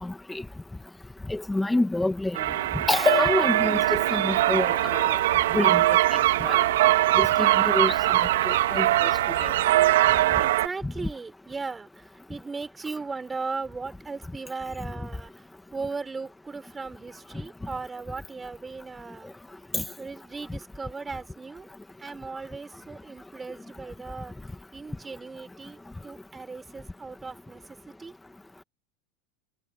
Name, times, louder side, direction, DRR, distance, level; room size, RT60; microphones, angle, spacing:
voice 1, 0.0-0.4 1.3-2.5 2.9-5.2 5.5-5.8 6.1-6.6 7.2-8.2 8.5-9.1 9.4-9.5 10.8-10.9 19.7-19.8, left 2 dB, 5° left, 1.8 m, -27 dB
sound 1, 2.4-10.7, right 14 dB, 85° right, 1.9 m, -22 dB
voice 2, 10.4-19.3 20.0-21.7 22.0-24.4 24.7-28.1, right 4 dB, 15° right, 5.7 m, -37 dB
supercardioid pair, 130°, 0 cm